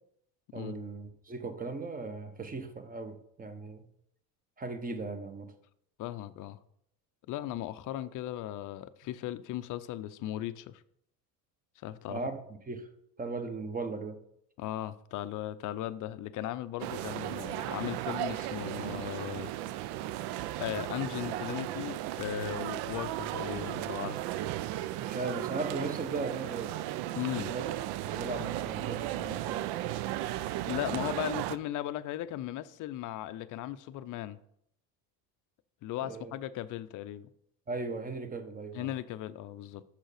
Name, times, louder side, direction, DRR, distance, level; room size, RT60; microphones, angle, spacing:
voice 1, 0.5-3.8 4.6-5.5 12.1-12.4 12.7-12.9 13.2-14.2 25.0-26.7 27.3-27.6 28.0-29.6 36.0-36.3 37.7-38.9, right 3 dB, 20° right, 1.0 m, -37 dB
voice 2, 6.0-6.6 7.3-10.8 11.8-12.3 14.6-19.5 20.6-24.3 27.1-27.5 30.7-34.4 35.8-37.3 38.7-39.8, left 13 dB, 45° left, 0.5 m, -37 dB
sound 1, 16.8-31.6, right 14 dB, 65° right, 0.5 m, -35 dB
6.3 x 5.7 x 4.9 m
supercardioid pair, 95°, 43 cm